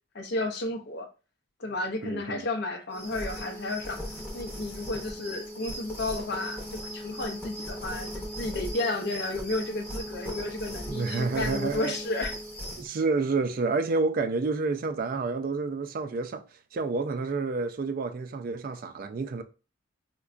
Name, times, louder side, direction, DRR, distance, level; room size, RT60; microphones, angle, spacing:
voice 1, 0.1-1.1 1.6-4.1 4.3-12.4, left 2 dB, 50° left, 0.5 m, -32 dB
voice 2, 2.0-2.4 10.9-11.9 12.8-16.4 16.7-19.4, right 3 dB, 45° right, 0.3 m, -29 dB
sound 1, 2.9-12.9, equal, 10° left, 0.7 m, -38 dB
4.6 x 2.2 x 2.4 m
head